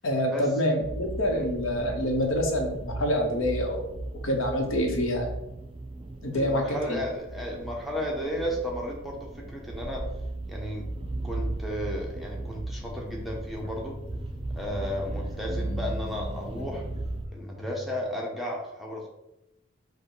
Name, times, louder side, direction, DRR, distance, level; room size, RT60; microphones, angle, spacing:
voice 1, 0.0-3.8 4.2-5.3 6.2-7.0, equal, 75° left, 2 dB, 0.9 m, -26 dB
sound 1, 0.8-17.3, right 2 dB, 25° right, 0.3 m, -36 dB
voice 2, 6.3-10.0 10.5-10.9 11.2-14.0 14.6-16.8 17.3-19.1, equal, ahead, -2 dB, 0.7 m, -34 dB
sound 2, 12.8-18.0, left 2 dB, 45° left, 0.7 m, -42 dB
5.0 x 2.2 x 4.7 m, 0.89 s
head